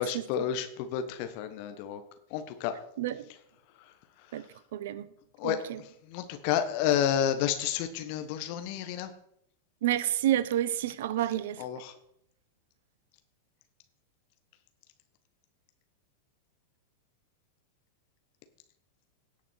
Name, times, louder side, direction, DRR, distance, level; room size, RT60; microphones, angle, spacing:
voice 1, 0.0-2.0 2.3-2.7 5.4-5.6 6.1-9.1 11.6-11.9, left 9 dB, 45° left, 1.4 m, -30 dB
voice 2, 4.7-5.1 5.4-5.8 9.8-11.6, right 12 dB, 55° right, 0.6 m, -29 dB
16.5 x 5.9 x 4.5 m
figure-of-eight pair, 90°, 0 cm